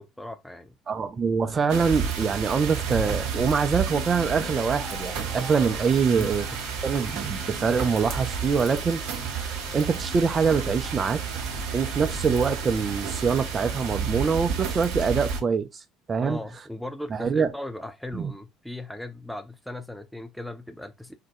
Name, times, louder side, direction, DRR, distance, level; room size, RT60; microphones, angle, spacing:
voice 1, 0.0-0.7 6.1-6.3 16.2-21.1, left 1 dB, ahead, 0.8 m, -37 dB
voice 2, 0.9-6.5 6.8-9.0 9.3-11.2 11.7-16.4 17.1-17.5 18.1-18.3, right 5 dB, 30° right, 0.5 m, -24 dB
sound 1, 1.7-15.4, right 6 dB, 60° right, 0.8 m, -31 dB
sound 2, 2.4-14.9, left 7 dB, 40° left, 0.6 m, -44 dB
4.2 x 2.2 x 4.5 m
figure-of-eight pair, 60°, 0 cm